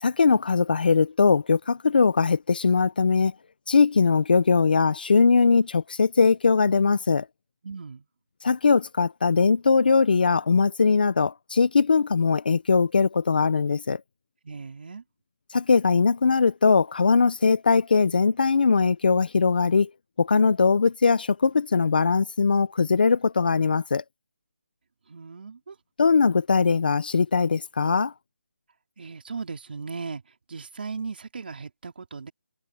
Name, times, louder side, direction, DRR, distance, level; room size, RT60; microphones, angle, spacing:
voice 1, 0.0-3.3 3.7-7.3 8.4-14.0 15.5-19.9 20.2-24.0 26.0-28.1, left 5 dB, 40° left, 0.8 m, -21 dB
voice 2, 7.6-8.1 14.4-15.0 25.1-25.8 29.0-30.2 30.5-32.3, right 5 dB, 45° right, 4.2 m, -37 dB
figure-of-eight pair, 175°, 7 cm